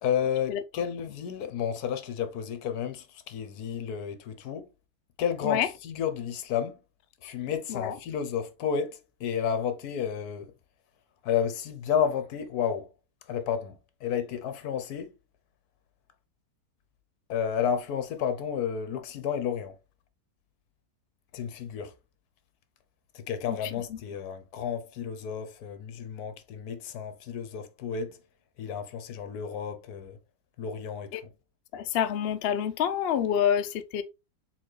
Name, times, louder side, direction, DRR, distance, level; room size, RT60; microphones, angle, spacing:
voice 1, 0.0-4.7 5.2-6.8 7.2-10.5 11.2-12.9 13.3-13.7 14.0-15.1 17.3-19.7 21.3-21.9 23.1-28.2 28.6-30.2 30.6-31.1, left 8 dB, 70° left, 1.2 m, -31 dB
voice 2, 31.7-34.0, left 9 dB, 85° left, 0.5 m, -27 dB
4.1 x 4.0 x 3.2 m
omnidirectional pair, 1.8 m